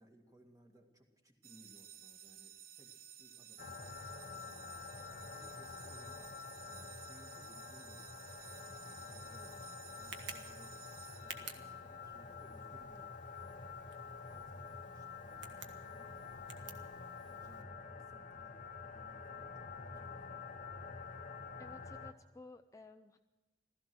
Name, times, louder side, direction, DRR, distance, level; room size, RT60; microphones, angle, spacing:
voice 1, 0.0-13.9 14.3-20.6, right 1 dB, 20° right, 2 dB, 2.1 m, -64 dB
sound 1, 1.4-11.8, right 9 dB, 55° right, 0.8 m, -55 dB
sound 2, 3.6-22.1, left 5 dB, 50° left, 0.9 m, -48 dB
Tick, 8.4-17.6, right 6 dB, 75° right, 1.6 m, -55 dB
voice 2, 21.6-23.2, left 2 dB, 15° left, 7 dB, 0.5 m, -55 dB
16.0 x 14.0 x 6.1 m, 1.2 s
head